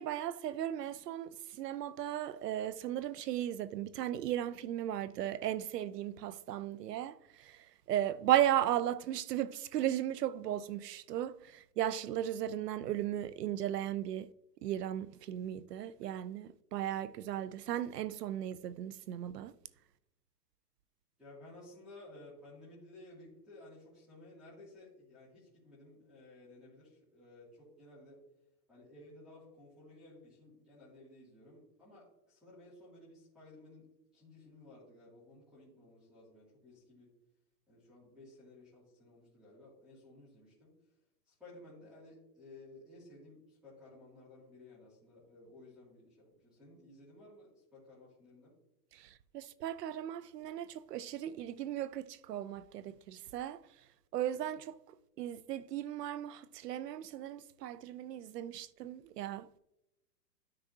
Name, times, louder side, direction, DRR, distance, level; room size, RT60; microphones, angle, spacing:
voice 1, 0.0-14.3 14.6-19.5 48.9-53.6 54.1-54.8 55.2-59.6, right 12 dB, 80° right, 0.7 m, -36 dB
voice 2, 21.2-28.2 28.7-37.1 37.7-40.7 41.3-48.5, left 2 dB, ahead, 2.6 m, -56 dB
12.0 x 6.3 x 2.8 m
supercardioid pair, 175°, 48 cm